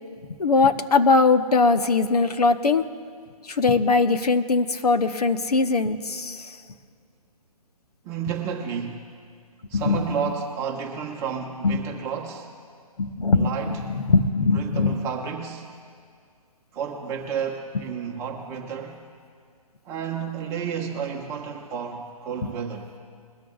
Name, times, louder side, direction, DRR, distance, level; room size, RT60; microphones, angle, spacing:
voice 1, 0.4-2.8 3.4-6.6 9.7-10.0 11.6-11.8 13.0-15.0, left 4 dB, 85° left, 8 dB, 1.1 m, -21 dB
voice 2, 8.0-9.1 9.7-12.5 13.3-13.8 14.4-15.7 16.7-19.0 19.8-22.9, right 7 dB, 15° right, -1 dB, 1.3 m, -31 dB
22.0 x 13.0 x 2.4 m, 2.2 s
hypercardioid pair, 160°, 19 cm